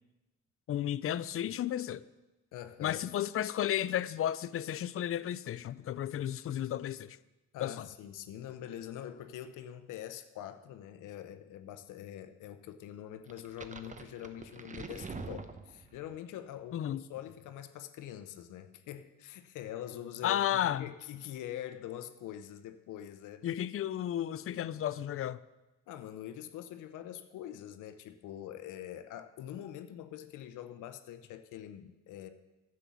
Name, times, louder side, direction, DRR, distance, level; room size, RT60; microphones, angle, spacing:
voice 1, 0.7-2.0 2.8-7.2 7.6-7.9 16.7-17.0 20.2-20.8 23.4-25.4, left 11 dB, 45° left, 0.5 m, -33 dB
voice 2, 2.5-3.0 7.5-23.4 25.9-32.3, left 11 dB, 85° left, 0.8 m, -44 dB
sound 1, 13.3-16.2, right 4 dB, 25° right, 0.8 m, -45 dB
10.0 x 7.7 x 7.0 m
cardioid pair, 90°, 30 cm